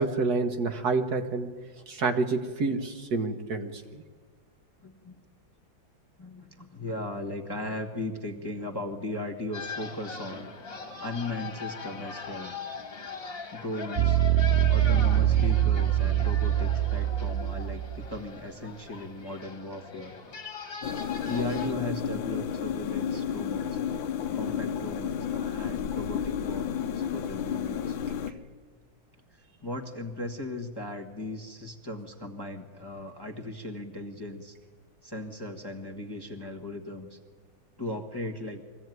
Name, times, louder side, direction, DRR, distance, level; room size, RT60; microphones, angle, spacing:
voice 1, 0.0-1.5 1.9-4.0, right 3 dB, 55° right, 6 dB, 1.5 m, -28 dB
voice 2, 4.8-5.2 6.2-10.5 11.0-12.6 13.5-14.2 14.7-20.1 21.2-23.8 24.3-28.0 29.3-34.5 35.0-37.2 37.8-38.6, left 1 dB, 15° left, 3 dB, 1.2 m, -37 dB
sound 1, 9.5-21.7, left 5 dB, 45° left, 2.1 m, -40 dB
sound 2, 14.0-18.1, right 12 dB, 80° right, 0.5 m, -24 dB
sound 3, 20.8-28.3, left 8 dB, 80° left, 1.6 m, -31 dB
23.0 x 15.5 x 9.3 m, 1.5 s
omnidirectional pair, 2.1 m